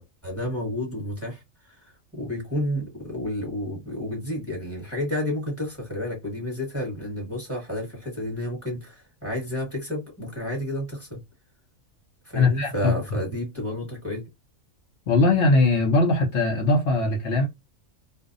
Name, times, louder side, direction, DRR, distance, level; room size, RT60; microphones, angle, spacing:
voice 1, 0.0-1.4 1.7-11.2 12.2-14.2, left 1 dB, 10° right, 1.1 m, -31 dB
voice 2, 12.4-12.9 15.1-17.5, left 2 dB, 65° left, 0.8 m, -20 dB
2.6 x 2.0 x 2.4 m
omnidirectional pair, 1.3 m